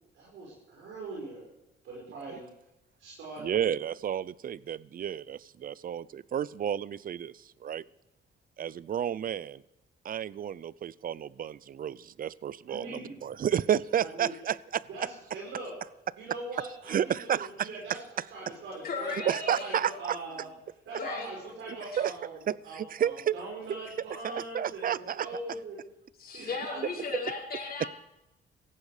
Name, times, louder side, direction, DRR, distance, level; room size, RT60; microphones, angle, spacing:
voice 1, 0.1-1.5 1.8-2.5 3.0-3.6 12.7-13.4 14.0-14.3 14.9-15.7 16.2-20.5 20.9-22.4 22.6-25.8 26.3-27.2, right 2 dB, 80° right, -4 dB, 5.4 m, -42 dB
voice 2, 3.4-7.8 8.6-9.6 10.0-14.8 16.9-17.7 19.3-20.2 22.0-23.3 23.7-23.8 24.2-25.3, right 9 dB, 45° right, 21 dB, 0.6 m, -31 dB
voice 3, 18.8-19.8 21.0-21.3 21.9-22.0 26.2-27.9, left 4 dB, 50° left, -2 dB, 5.6 m, -36 dB
17.5 x 15.0 x 5.0 m, 0.92 s
cardioid pair, 90°, 20 cm